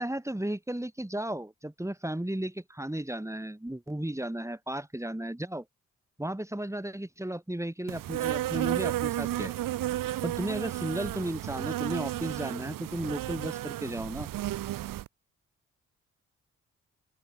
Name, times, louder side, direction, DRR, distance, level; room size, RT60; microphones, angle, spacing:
voice 1, 0.0-5.6 6.2-9.5 10.2-14.3, right 1 dB, 10° right, 6.7 m, -34 dB
Insect, 7.9-15.1, right 14 dB, 75° right, 2.7 m, -33 dB
open air
hypercardioid pair, 40°, 33 cm